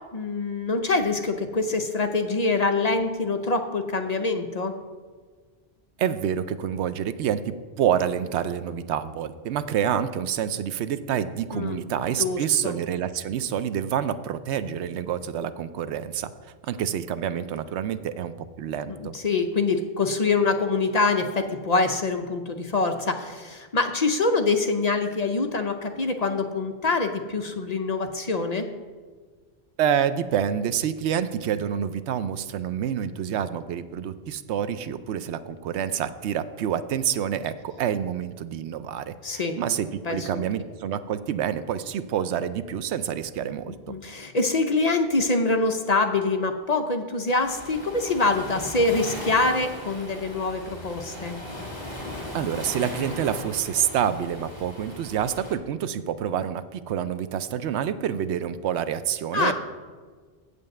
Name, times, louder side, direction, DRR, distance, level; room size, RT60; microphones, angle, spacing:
voice 1, 0.1-4.7 11.5-11.8 12.2-12.7 18.9-28.7 39.2-39.6 40.0-40.4 43.9-51.4 59.3-59.5, left 3 dB, 45° left, 5 dB, 0.6 m, -25 dB
voice 2, 6.0-16.3 16.6-18.3 18.6-19.1 29.8-44.0 52.3-59.5, right 9 dB, 90° right, 12 dB, 0.9 m, -27 dB
Waves surf, 47.4-55.5, left 1 dB, 25° left, 2.5 m, -37 dB
8.3 x 5.3 x 7.6 m, 1.5 s
omnidirectional pair, 1.1 m